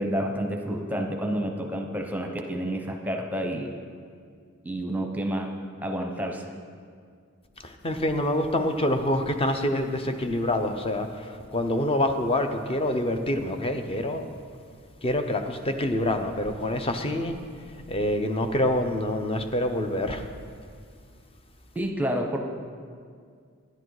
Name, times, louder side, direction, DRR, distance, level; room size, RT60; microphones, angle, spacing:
voice 1, 0.0-3.7 4.6-5.5 5.8-6.5 21.7-22.4, equal, 5° right, 2 dB, 0.8 m, -29 dB
voice 2, 7.6-11.1 11.5-14.2 15.0-17.4 17.9-20.3, left 1 dB, 25° left, 7 dB, 0.7 m, -26 dB
11.5 x 10.5 x 4.8 m, 2.1 s
head